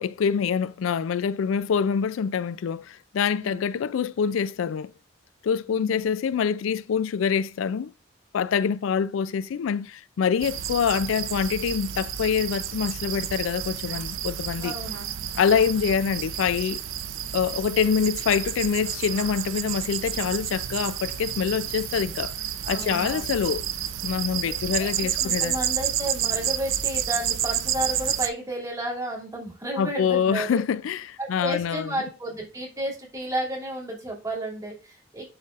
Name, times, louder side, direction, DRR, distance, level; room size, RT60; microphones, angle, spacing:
voice 1, 0.0-4.9 5.4-7.9 8.3-14.7 15.3-16.8 17.3-22.3 22.7-23.7 24.0-25.5 29.8-32.0, left 7 dB, 80° left, 0.3 m, -25 dB
voice 2, 5.7-6.1 14.6-15.0 22.6-23.3 24.5-30.6 31.2-35.3, right 1 dB, 15° right, 2.6 m, -32 dB
sound 1, 10.4-28.3, right 10 dB, 90° right, 0.6 m, -30 dB
11.0 x 4.0 x 2.4 m
head